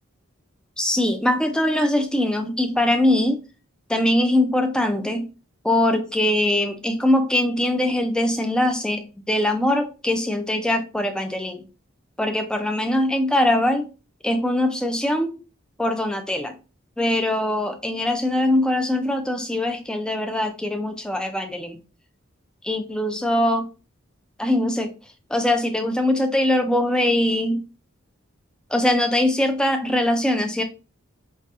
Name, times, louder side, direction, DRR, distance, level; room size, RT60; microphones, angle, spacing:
voice 1, 0.8-3.4 3.9-5.3 5.6-11.6 12.2-13.9 14.2-15.3 15.8-16.5 17.0-21.8 22.6-23.7 24.4-24.9 25.3-27.6 28.7-30.6, left 1 dB, 5° left, 0.3 m, -22 dB
4.0 x 2.2 x 2.4 m
head